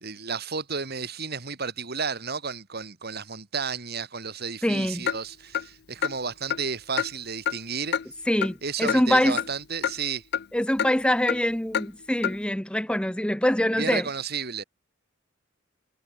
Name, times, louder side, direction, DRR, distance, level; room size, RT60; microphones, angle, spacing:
voice 1, 0.0-8.0 8.6-10.2 13.8-14.6, right 5 dB, 55° right, 2.7 m, -32 dB
voice 2, 4.6-5.1 8.3-9.4 10.5-14.1, left 1 dB, 5° left, 0.8 m, -24 dB
Clock, 5.1-5.2 5.5-5.7 6.0-6.2 6.5-6.6 7.0-7.1 7.5-7.6 7.9-8.1 8.4-8.5 8.9-9.0 9.4-9.5 9.8-9.9 10.3-10.5 10.8-10.9 11.3-11.4 11.7-11.9 12.2-12.4, left 8 dB, 55° left, 0.5 m, -26 dB
head